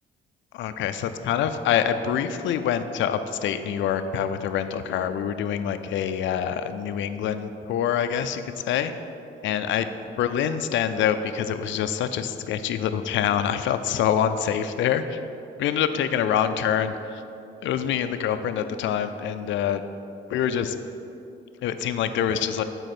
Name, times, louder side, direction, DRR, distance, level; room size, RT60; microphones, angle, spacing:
voice 1, 0.5-8.9 9.4-9.9 10.2-15.2 15.6-17.2 17.6-19.8 20.3-20.7 21.6-22.6, left 9 dB, 75° left, 9 dB, 0.4 m, -25 dB
7.9 x 4.6 x 5.9 m, 2.7 s
cardioid pair, 90°, 20 cm